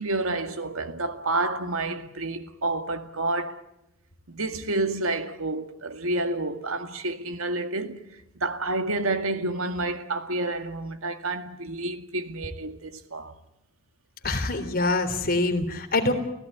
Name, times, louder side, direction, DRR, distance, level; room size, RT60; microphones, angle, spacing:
voice 1, 0.0-3.6 4.3-8.0 8.4-13.3, right 2 dB, 75° right, 2.0 m, -29 dB
voice 2, 14.2-16.1, left 2 dB, 45° left, 3.5 m, -25 dB
29.0 x 16.0 x 9.7 m
head